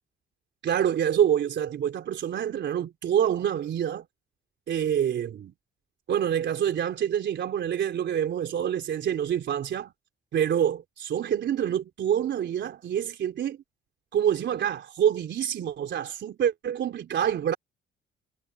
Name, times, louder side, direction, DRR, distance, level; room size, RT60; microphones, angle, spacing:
voice 1, 0.6-4.1 4.7-5.5 6.1-9.9 10.3-13.6 14.1-17.6, right 9 dB, 65° right, 3.6 m, -26 dB
cardioid pair, 90°, 20 cm